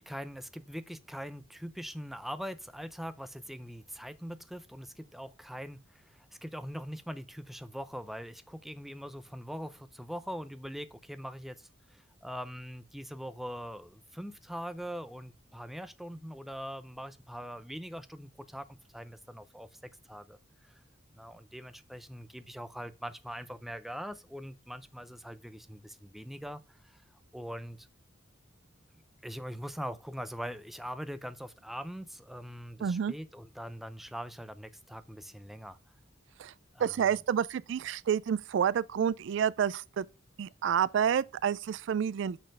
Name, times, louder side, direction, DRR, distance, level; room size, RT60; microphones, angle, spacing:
voice 1, 0.0-19.7 20.1-20.4 20.6-20.8 21.1-27.0 27.3-27.9 29.2-35.8 36.7-37.1, equal, ahead, 0.5 m, -42 dB
voice 2, 32.8-33.1 36.4-36.5 36.8-40.1 40.4-42.4, right 8 dB, 65° right, 0.3 m, -29 dB
6.3 x 4.2 x 6.4 m
head